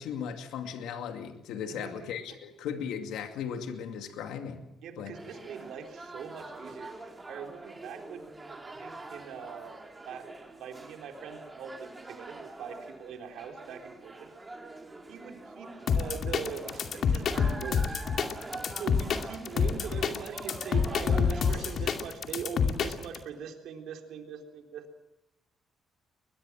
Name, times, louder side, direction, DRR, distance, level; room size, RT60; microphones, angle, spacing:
voice 1, 0.0-4.6 5.0-5.1, left 7 dB, 90° left, 5 dB, 2.4 m, -37 dB
voice 2, 1.6-2.1 4.8-14.3 15.1-18.0 18.8-24.9, right 7 dB, 80° right, 3 dB, 3.8 m, -42 dB
sound 1, 5.1-22.0, right 2 dB, 20° right, 4.9 m, -45 dB
sound 2, 15.9-23.2, left 6 dB, 65° left, 2.4 m, -27 dB
22.5 x 21.5 x 7.4 m, 0.87 s
cardioid pair, 90°, 0 cm